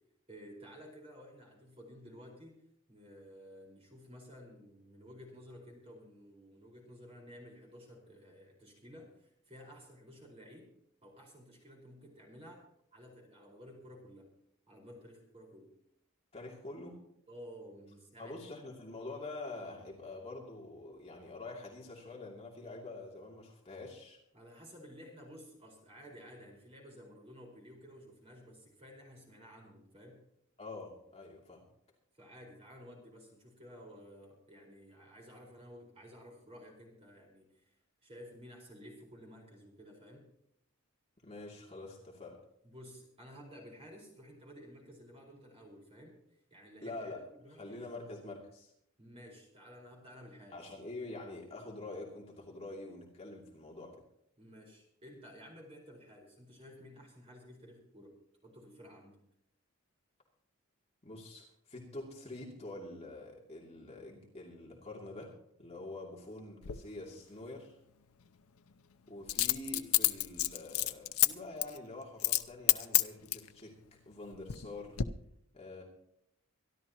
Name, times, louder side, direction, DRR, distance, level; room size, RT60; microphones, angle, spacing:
voice 1, 0.3-2.6 2.9-10.7 11.0-12.6 12.9-14.3 14.7-15.7 17.3-18.4 24.3-30.2 32.1-37.7 38.0-40.3 42.6-47.1 47.4-47.9 49.0-50.6 54.4-58.2 58.4-59.2, equal, 25° right, -1 dB, 4.8 m, -53 dB
voice 2, 16.3-17.0 18.2-24.2 30.6-31.6 41.2-42.4 46.8-47.2 47.6-48.7 50.5-53.9 61.0-65.3 65.6-67.8 69.1-75.0 75.5-75.8, left 2 dB, 30° left, -2 dB, 2.8 m, -46 dB
Coin (dropping), 66.6-66.8 69.3-71.3 71.6-71.8 72.2-72.4 72.7-73.5 74.1-74.7 75.0-75.1, left 15 dB, 80° left, 0.6 m, -28 dB
24.5 x 12.0 x 3.0 m, 0.73 s
head